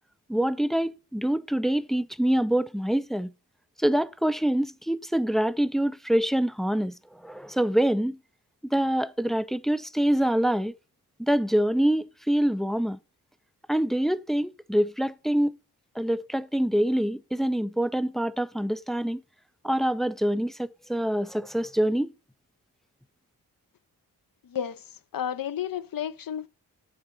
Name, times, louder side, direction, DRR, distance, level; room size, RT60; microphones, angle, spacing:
voice 1, 0.3-3.3 3.8-8.2 8.6-10.7 11.2-13.0 13.7-15.5 16.0-19.2 19.6-22.1, right 1 dB, ahead, 0.5 m, -25 dB
voice 2, 24.5-24.8 25.1-26.5, left 9 dB, 55° left, 0.8 m, -31 dB
8.8 x 3.8 x 6.6 m
supercardioid pair, 45°, 41 cm